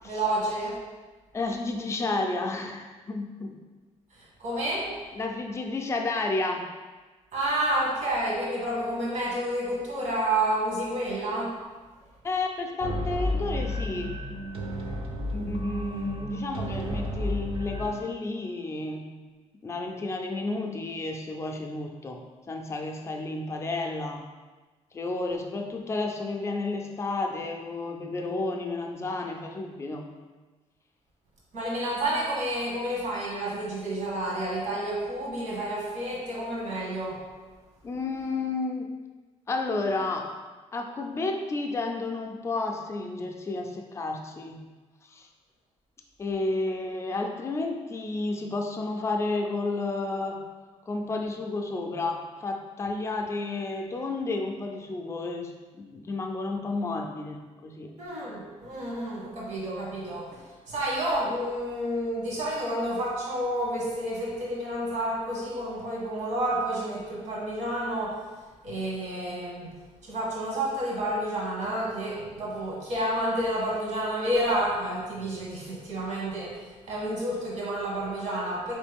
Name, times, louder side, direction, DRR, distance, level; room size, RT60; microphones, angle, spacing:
voice 1, 0.0-0.8 4.1-4.9 7.3-11.5 31.5-37.2 58.0-68.2 68.6-69.7 70.0-78.7, right 1 dB, 80° right, -4 dB, 1.4 m, -30 dB
voice 2, 1.3-3.5 5.1-6.7 12.2-14.2 15.3-19.1 19.6-22.2 22.5-24.2 24.9-30.0 37.8-38.9 39.5-40.3 40.7-44.6 45.1-45.3 46.2-50.4 50.9-57.9, left 3 dB, 20° left, 2 dB, 0.4 m, -31 dB
sound 1, 12.8-18.0, equal, 50° right, 0.6 m, -32 dB
4.2 x 3.2 x 3.5 m, 1.3 s
cardioid pair, 160°, 12 cm